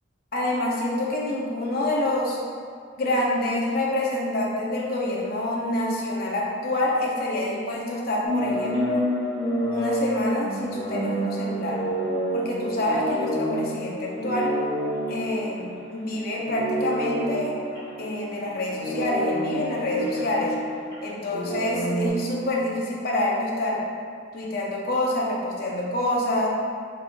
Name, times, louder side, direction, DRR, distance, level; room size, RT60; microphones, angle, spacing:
voice 1, 0.3-2.4 3.0-9.0 9.7-11.8 12.3-14.5 15.1-17.6 18.0-20.5 21.0-23.8 24.3-26.5, left 1 dB, 50° left, -3 dB, 0.7 m, -27 dB
sound 1, 8.2-16.0 16.3-22.1, equal, 25° left, 1.3 m, -29 dB
4.0 x 3.8 x 2.3 m, 2.2 s
head